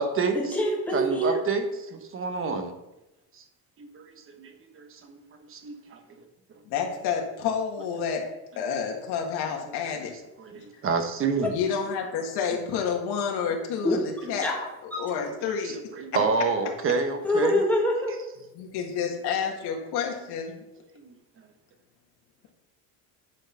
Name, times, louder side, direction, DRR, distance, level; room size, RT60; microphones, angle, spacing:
voice 1, 0.0-0.4 0.9-1.7 1.9-2.7 3.8-4.0 4.4-5.2 5.5-6.0 10.4-11.5 14.2-14.3 15.6-17.6 21.0-21.1, right 4 dB, 35° right, 6 dB, 1.1 m, -28 dB
voice 2, 0.5-1.4 13.8-14.0 14.4-15.0 17.2-18.1, left 1 dB, 5° left, -2 dB, 1.9 m, -25 dB
voice 3, 6.7-8.2 8.6-10.1 10.6-10.7 11.5-14.5 15.0-15.8 18.5-20.6, left 6 dB, 80° left, 1 dB, 1.9 m, -29 dB
9.9 x 4.6 x 5.5 m, 0.95 s
cardioid pair, 155°, 39 cm